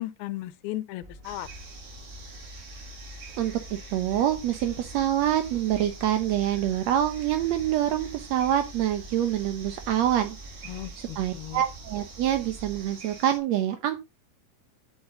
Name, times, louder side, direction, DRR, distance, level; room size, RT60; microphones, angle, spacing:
voice 1, 0.0-1.5 10.6-11.6, left 15 dB, 85° left, 2.7 m, -36 dB
sound 1, 1.0-12.9, equal, 25° right, 1.0 m, -45 dB
sound 2, 1.2-13.4, right 4 dB, 90° right, 5.8 m, -47 dB
voice 2, 3.9-10.4 11.2-14.0, right 11 dB, 75° right, 1.6 m, -26 dB
9.4 x 8.1 x 3.8 m
omnidirectional pair, 4.3 m